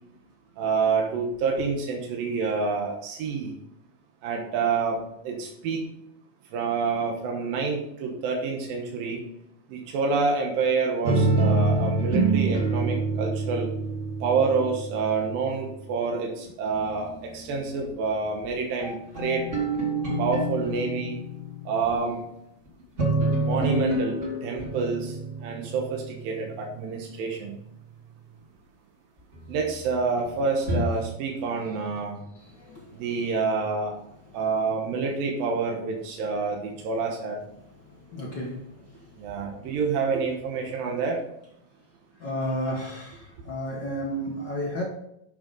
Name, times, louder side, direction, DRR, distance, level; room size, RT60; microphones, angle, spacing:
voice 1, 0.6-3.5 4.2-5.0 5.2-5.8 6.5-9.2 9.7-13.7 14.2-17.1 17.3-19.5 20.2-21.1 21.7-22.2 23.4-25.1 25.4-27.6 29.5-32.2 32.9-33.9 34.3-37.4 39.2-41.2, right 4 dB, 85° right, 1 dB, 3.1 m, -27 dB
sound 1, 11.0-15.6 16.5-17.5 18.4-21.9 22.7-27.3 29.3-29.4 30.1-30.8, right 2 dB, 25° right, 2.4 m, -27 dB
voice 2, 38.1-38.6 42.2-43.2 43.4-44.8, equal, 70° left, -1 dB, 1.0 m, -31 dB
10.5 x 6.5 x 4.0 m, 0.77 s
omnidirectional pair, 4.0 m